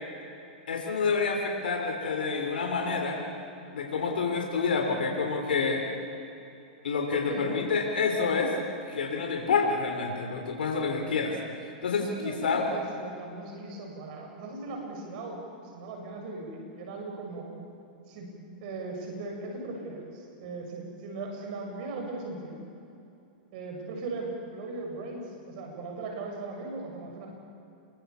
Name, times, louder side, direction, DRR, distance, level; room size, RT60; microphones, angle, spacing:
voice 1, 0.7-3.2 3.7-5.8 6.8-8.5 8.9-11.4 11.6-12.6, left 4 dB, 85° left, 1 dB, 3.9 m, -28 dB
voice 2, 7.3-7.7 11.9-15.4 15.6-17.5 18.1-18.3 18.6-22.6 23.5-27.3, right 3 dB, 60° right, 1 dB, 7.1 m, -38 dB
29.0 x 23.5 x 7.1 m, 2.7 s
hypercardioid pair, 120°, 5 cm